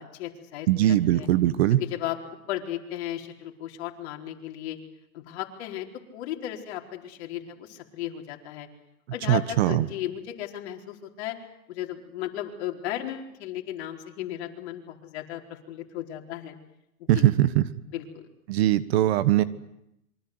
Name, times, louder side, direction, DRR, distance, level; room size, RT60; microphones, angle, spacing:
voice 1, 0.0-1.3 1.8-2.2 2.5-4.8 5.1-5.9 6.1-8.7 9.1-11.4 11.7-16.6 17.1-17.3 17.9-18.3, left 12 dB, 45° left, 2 dB, 4.5 m, -35 dB
voice 2, 0.7-1.8 9.3-9.9 17.1-17.6 18.5-19.4, right 13 dB, 45° right, 14 dB, 1.4 m, -21 dB
27.0 x 24.0 x 8.0 m, 0.84 s
hypercardioid pair, 140°, 44 cm